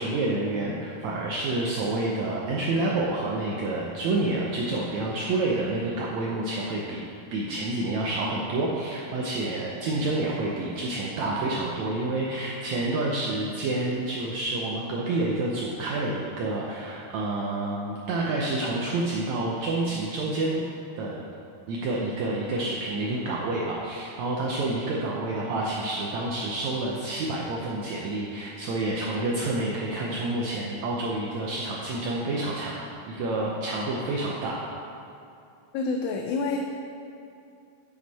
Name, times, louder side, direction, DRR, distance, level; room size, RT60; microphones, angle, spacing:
voice 1, 0.0-7.0 7.3-20.6 21.0-21.2 21.7-32.7 33.1-34.7, right 2 dB, 75° right, -3 dB, 1.7 m, -28 dB
voice 2, 35.7-36.6, left 4 dB, 90° left, 2 dB, 2.3 m, -27 dB
9.2 x 7.3 x 4.1 m, 2.6 s
omnidirectional pair, 4.0 m